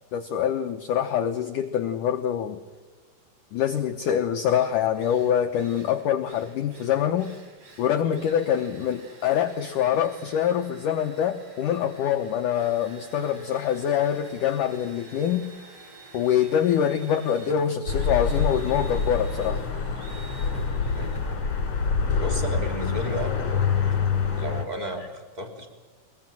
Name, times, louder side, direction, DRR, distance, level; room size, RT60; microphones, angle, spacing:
voice 1, 0.1-2.6 3.5-7.3 7.8-15.5 16.1-19.6, left 9 dB, 75° left, 6 dB, 1.9 m, -25 dB
Drill, 4.0-4.1 4.4-22.6, right 3 dB, 35° right, 4.9 m, -48 dB
sound 1, 17.9-24.6, left 5 dB, 35° left, 3.0 m, -26 dB
voice 2, 20.7-21.3 22.2-23.4 24.3-25.7, left 1 dB, 10° right, 4 dB, 2.6 m, -33 dB
22.5 x 22.0 x 7.6 m, 1.3 s
omnidirectional pair, 5.0 m